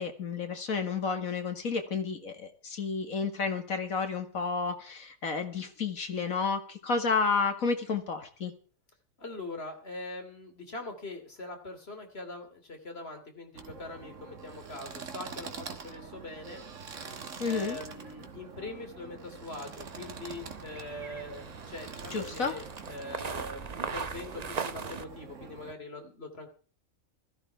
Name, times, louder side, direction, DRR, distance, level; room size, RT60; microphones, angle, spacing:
voice 1, 0.0-8.5 17.4-17.8 22.1-22.5, left 5 dB, 80° left, 6 dB, 2.4 m, -31 dB
voice 2, 9.2-16.6 17.4-26.5, left 2 dB, 50° left, 5 dB, 3.2 m, -42 dB
sound 1, 13.5-25.7, right 5 dB, 65° right, 1.7 m, -45 dB
sound 2, 19.8-25.0, right 5 dB, 35° right, 0.7 m, -40 dB
16.0 x 14.0 x 4.7 m, 0.41 s
omnidirectional pair, 1.4 m